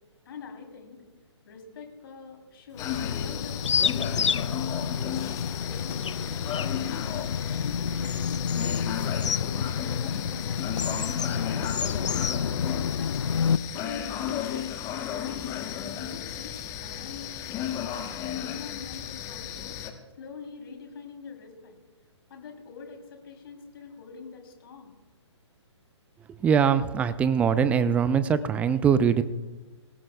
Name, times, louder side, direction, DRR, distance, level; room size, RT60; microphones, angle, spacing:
voice 1, 0.2-1.0 1.4-5.2 5.7-6.4 6.9-9.2 9.6-11.1 11.4-12.5 13.0-14.6 15.0-17.4 18.2-19.8 20.2-21.8 22.3-24.9, left 5 dB, 50° left, 4 dB, 3.1 m, -44 dB
sound 1, 2.8-13.6, left 7 dB, 75° left, 0.4 m, -29 dB
sound 2, 2.8-19.9, left 10 dB, 20° left, 1.0 m, -34 dB
voice 2, 26.3-29.2, right 7 dB, 10° right, 14 dB, 0.4 m, -22 dB
24.0 x 18.0 x 2.2 m, 1.2 s
figure-of-eight pair, 130°, 16 cm